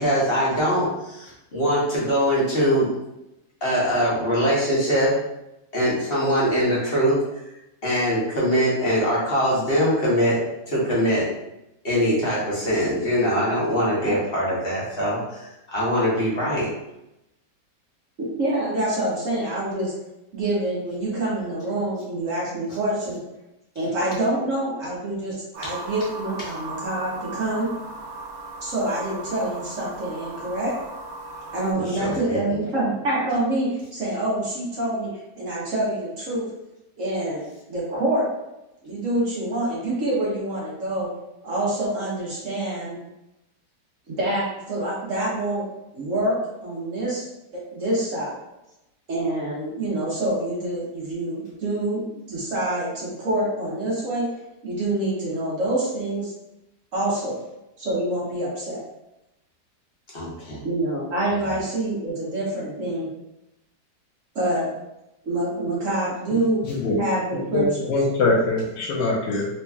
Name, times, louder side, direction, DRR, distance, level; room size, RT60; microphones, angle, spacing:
voice 1, 0.0-2.9 3.6-5.1 5.7-7.2 7.8-10.4 10.7-11.3 11.8-16.7 25.6-25.7 31.7-32.6 60.1-60.6, equal, 40° left, -7 dB, 1.2 m, -22 dB
voice 2, 18.2-19.9 20.3-23.2 23.7-27.7 28.6-30.7 31.5-35.1 35.3-36.4 37.0-37.4 37.7-38.3 38.8-41.1 41.4-43.0 44.1-45.6 45.9-46.3 46.6-47.2 47.7-48.3 49.1-52.0 52.3-54.3 54.6-56.3 56.9-57.4 57.8-58.8 60.6-63.1 64.3-64.7 65.2-66.6 67.0-67.9, right 1 dB, 50° right, -6 dB, 1.3 m, -26 dB
sound 1, 25.5-31.7, right 2 dB, 90° right, 1.6 m, -37 dB
voice 3, 67.5-69.5, left 2 dB, 90° left, -3 dB, 1.5 m, -22 dB
4.0 x 2.9 x 2.3 m, 0.90 s
omnidirectional pair, 1.8 m